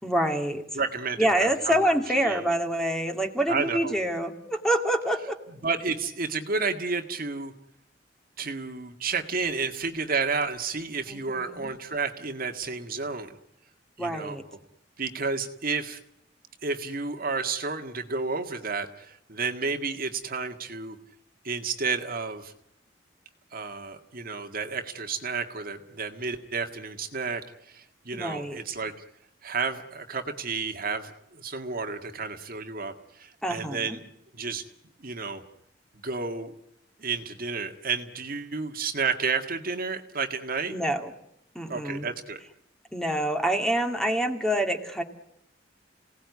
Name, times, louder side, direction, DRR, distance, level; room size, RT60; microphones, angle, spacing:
voice 1, 0.0-0.6 1.2-5.4 11.1-11.7 14.0-14.4 28.1-28.6 33.4-34.0 40.7-41.1 41.5-42.1 42.9-45.0, right 1 dB, 5° left, 4 dB, 2.3 m, -26 dB
voice 2, 0.7-1.8 2.2-2.4 3.5-4.0 5.6-7.5 8.4-13.3 14.0-14.4 15.0-16.0 16.6-21.0 21.4-22.5 23.5-28.9 29.4-34.0 34.3-34.6 35.0-35.4 36.0-36.5 37.0-40.7 41.7-42.4, right 4 dB, 50° right, 6 dB, 1.9 m, -31 dB
27.5 x 18.0 x 9.6 m, 0.82 s
head